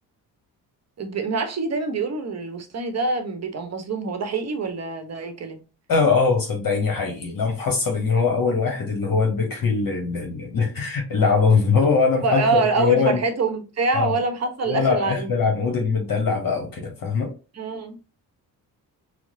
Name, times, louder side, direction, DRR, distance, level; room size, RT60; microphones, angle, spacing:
voice 1, 1.0-5.6 12.2-15.3 17.6-18.0, right 3 dB, 30° right, 0.9 m, -25 dB
voice 2, 5.9-13.2 13.9-14.1 14.6-17.3, left 4 dB, 40° left, 1.1 m, -22 dB
4.5 x 2.1 x 2.6 m
hypercardioid pair, 45°, 50 cm